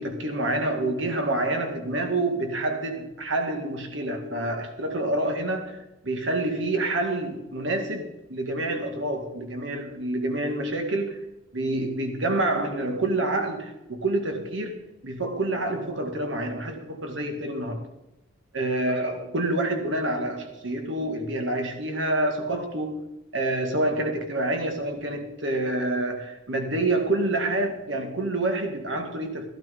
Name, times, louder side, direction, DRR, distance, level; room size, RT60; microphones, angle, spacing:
voice 1, 0.0-11.2 11.5-17.9 18.5-23.1 23.3-29.5, right 2 dB, 85° right, 4 dB, 2.0 m, -27 dB
15.0 x 12.0 x 3.8 m, 0.94 s
head